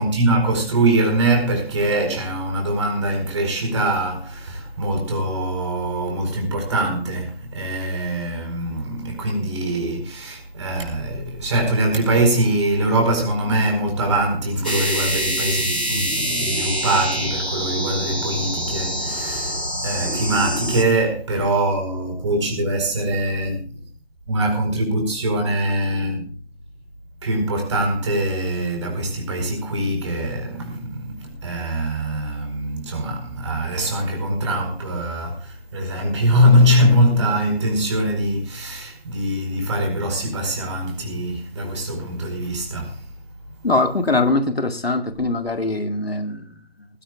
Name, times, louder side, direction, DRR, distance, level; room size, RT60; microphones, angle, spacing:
voice 1, 0.0-23.6 24.3-26.3 27.2-43.0, right 1 dB, 25° right, 4.6 m, -22 dB
sound 1, 14.6-20.8, equal, 90° right, 4.9 m, -25 dB
voice 2, 43.6-46.6, left 2 dB, 65° left, 2.1 m, -22 dB
19.5 x 16.5 x 2.5 m
figure-of-eight pair, 155°, 32 cm